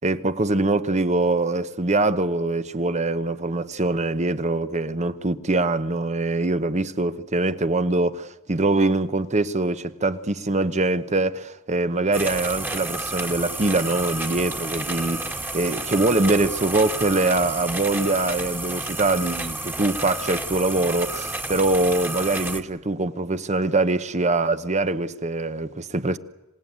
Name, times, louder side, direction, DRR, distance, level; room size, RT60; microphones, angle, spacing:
voice 1, 0.0-26.2, right 2 dB, 30° right, 1.0 m, -23 dB
sound 1, 12.1-22.6, right 2 dB, 10° right, 1.7 m, -30 dB
26.5 x 18.0 x 9.4 m
head